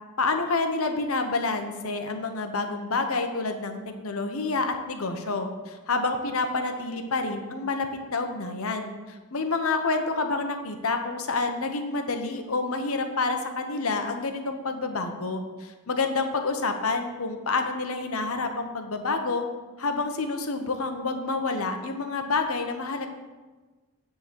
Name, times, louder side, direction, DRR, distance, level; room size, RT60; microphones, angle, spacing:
voice 1, 0.2-19.4 19.8-23.1, left 3 dB, 75° left, 5 dB, 0.9 m, -28 dB
9.8 x 3.9 x 6.9 m, 1.3 s
head